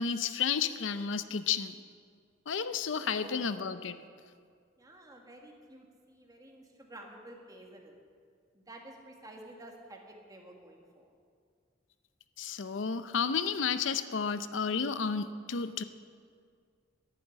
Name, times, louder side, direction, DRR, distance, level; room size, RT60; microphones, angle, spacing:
voice 1, 0.0-1.7 2.5-4.0 12.4-15.8, left 6 dB, 85° left, 12 dB, 0.6 m, -32 dB
voice 2, 3.0-3.4 4.8-8.0 8.5-11.1, right 1 dB, 20° right, 2 dB, 1.8 m, -51 dB
11.5 x 9.9 x 9.9 m, 2.1 s
head